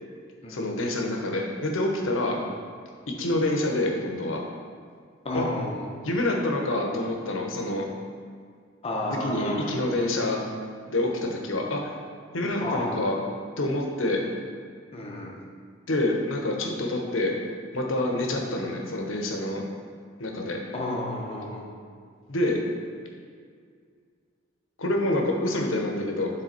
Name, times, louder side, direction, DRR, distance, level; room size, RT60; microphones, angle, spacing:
voice 1, 0.5-2.4 3.1-4.4 5.3-5.5 6.0-7.9 9.1-10.4 10.9-11.9 12.3-13.2 13.6-14.2 15.9-17.3 17.7-19.6 20.2-20.6 22.3-22.6 24.8-26.3, left 1 dB, 75° left, 1 dB, 1.0 m, -27 dB
voice 2, 5.2-5.9 8.8-9.9 12.6-13.0 14.9-15.3 20.7-21.7, left 1 dB, 30° left, -1 dB, 1.0 m, -31 dB
9.3 x 3.8 x 4.5 m, 2.1 s
head